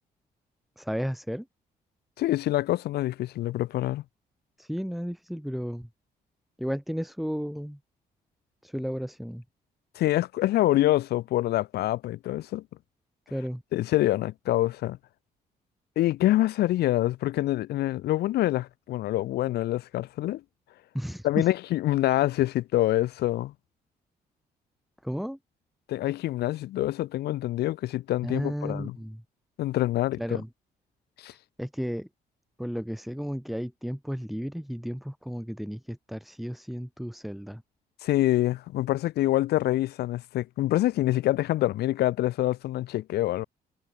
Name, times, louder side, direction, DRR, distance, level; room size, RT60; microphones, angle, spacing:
voice 1, 0.8-1.5 4.6-5.9 6.6-7.8 8.6-9.4 13.3-13.6 20.9-21.5 25.0-25.4 28.2-29.2 30.2-30.5 31.2-32.1 32.6-37.6, equal, ahead, 1.8 m, -33 dB
voice 2, 2.2-4.0 9.9-12.6 13.7-15.0 16.0-20.4 21.2-23.5 25.9-28.9 29.6-30.4 31.2-31.3 38.0-43.5, left 15 dB, 80° left, 1.1 m, -26 dB
cardioid pair, 145°, 16 cm